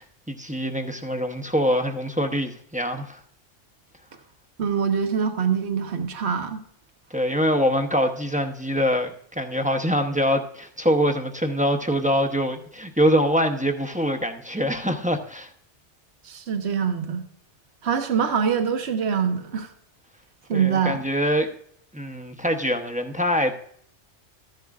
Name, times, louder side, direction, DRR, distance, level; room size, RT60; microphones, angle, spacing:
voice 1, 0.0-3.2 7.1-15.5 20.5-21.5 21.9-23.5, equal, 10° right, 4 dB, 0.7 m, -24 dB
voice 2, 4.6-6.6 16.2-17.2 17.8-19.7 20.5-21.0, right 7 dB, 65° right, 6 dB, 1.3 m, -24 dB
13.5 x 10.5 x 2.4 m, 0.63 s
omnidirectional pair, 1.2 m